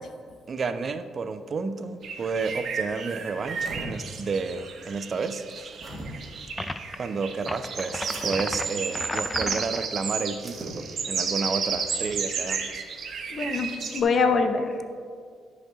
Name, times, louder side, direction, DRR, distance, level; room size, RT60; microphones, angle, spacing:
voice 1, 0.5-5.7 7.0-12.8, right 4 dB, 45° right, 10 dB, 0.5 m, -31 dB
sound 1, 2.0-14.0, right 6 dB, 60° right, 1.0 m, -33 dB
sound 2, 3.3-3.9 5.3-6.1 8.0-8.3 10.3-10.8, right 2 dB, 25° right, 2.2 m, -40 dB
sound 3, 6.6-7.0 7.4-9.9, left 2 dB, 15° left, 0.4 m, -34 dB
voice 2, 13.3-14.7, left 4 dB, 55° left, 7 dB, 0.9 m, -24 dB
13.5 x 5.2 x 3.8 m, 2.1 s
cardioid pair, 90°, 0 cm